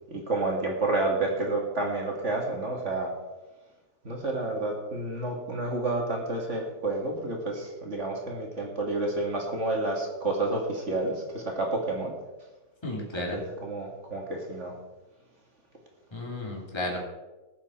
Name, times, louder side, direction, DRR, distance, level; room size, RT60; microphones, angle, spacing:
voice 1, 0.1-3.1 4.0-12.1 13.0-14.7, right 2 dB, 40° right, 1 dB, 2.2 m, -30 dB
voice 2, 12.8-13.4 16.1-17.0, left 1 dB, 15° left, -2 dB, 2.7 m, -33 dB
19.5 x 7.4 x 4.3 m, 1.1 s
omnidirectional pair, 1.9 m